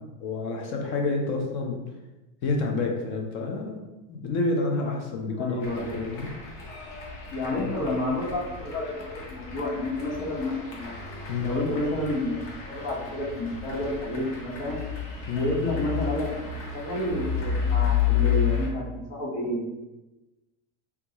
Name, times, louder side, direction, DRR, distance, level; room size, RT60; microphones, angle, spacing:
voice 1, 0.0-1.8 2.4-3.8 4.1-6.3 7.5-7.7 11.3-11.5 15.3-15.5, left 3 dB, 35° left, 1 dB, 0.5 m, -29 dB
voice 2, 5.4-6.1 7.3-10.9 11.4-14.8 15.3-19.7, left 1 dB, 55° left, -4 dB, 1.3 m, -30 dB
sound 1, 5.6-18.7, left 8 dB, 85° left, 1.0 m, -31 dB
3.6 x 2.3 x 2.9 m, 1.0 s
cardioid pair, 165°, 37 cm